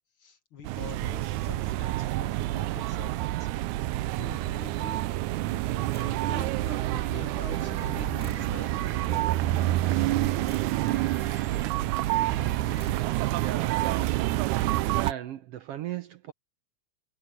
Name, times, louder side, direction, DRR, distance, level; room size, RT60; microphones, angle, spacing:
voice 1, 0.2-3.7 4.2-5.0 5.9-9.3, left 7 dB, 55° left, 1.8 m, -46 dB
sound 1, 0.6-15.1, right 17 dB, 90° right, 2.1 m, -28 dB
sound 2, 5.4-6.5 7.6-8.6 9.9-11.1 12.2-13.1, left 1 dB, 5° left, 0.9 m, -47 dB
Wind, 6.2-14.3, right 4 dB, 30° right, 2.1 m, -43 dB
voice 2, 13.4-16.3, right 11 dB, 70° right, 1.5 m, -38 dB
omnidirectional pair, 3.4 m